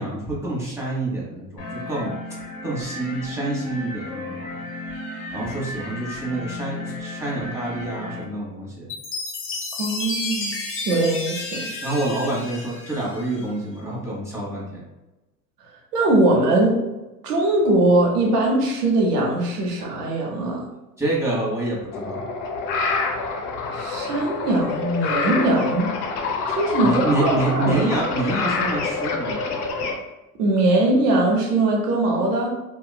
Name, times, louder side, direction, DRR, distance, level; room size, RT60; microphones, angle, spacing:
voice 1, 0.0-2.2 2.6-4.7 5.3-8.9 11.8-14.8 21.0-22.2 26.8-29.4, right 2 dB, 5° right, -5 dB, 1.1 m, -27 dB
sound 1, 1.6-8.2, left 2 dB, 45° left, 1.1 m, -34 dB
Chime, 8.9-13.5, left 3 dB, 30° left, 0.7 m, -31 dB
voice 2, 9.8-10.6 10.8-11.7 15.9-16.8 17.2-20.7 23.7-25.9 26.5-27.8 30.4-32.5, right 2 dB, 80° right, 0 dB, 0.8 m, -21 dB
sound 2, 21.9-29.9, left 4 dB, 75° left, 0.6 m, -27 dB
2.8 x 2.3 x 2.2 m, 1.0 s
hypercardioid pair, 80°, 46 cm